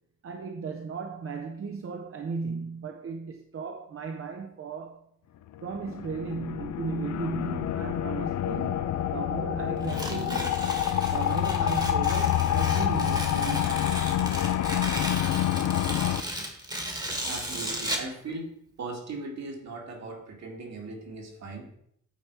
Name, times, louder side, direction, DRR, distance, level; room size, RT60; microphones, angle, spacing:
voice 1, 0.2-5.0 5.6-10.6 11.1-13.9, right 5 dB, 45° right, 0.7 m, -36 dB
sound 1, 5.5-16.2, left 11 dB, 70° left, 0.5 m, -27 dB
Tearing, 9.8-18.1, right 1 dB, 15° right, 1.3 m, -35 dB
voice 2, 17.3-18.5 18.8-21.8, right 3 dB, 65° right, 2.1 m, -38 dB
9.1 x 4.3 x 4.6 m
cardioid pair, 120°, 30 cm